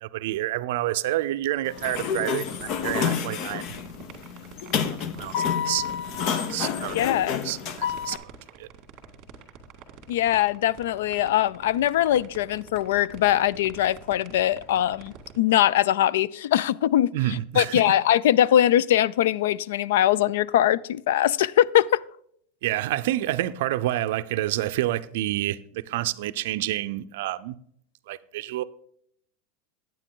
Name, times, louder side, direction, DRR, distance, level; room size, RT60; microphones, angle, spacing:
voice 1, 0.0-3.7 4.9-5.8 6.1-6.2 6.5-7.0 7.4-8.2 8.6-8.7 17.1-17.9 22.6-27.6 28.1-28.6, right 15 dB, 65° right, 0.5 m, -28 dB
Sliding door, 1.7-8.2, left 7 dB, 40° left, 0.7 m, -29 dB
sound 1, 1.7-15.4, right 7 dB, 35° right, 2.0 m, -46 dB
voice 2, 6.9-7.4 10.1-17.1 17.6-22.0, left 12 dB, 85° left, 0.3 m, -22 dB
9.9 x 9.2 x 3.7 m
supercardioid pair, 170°, 0 cm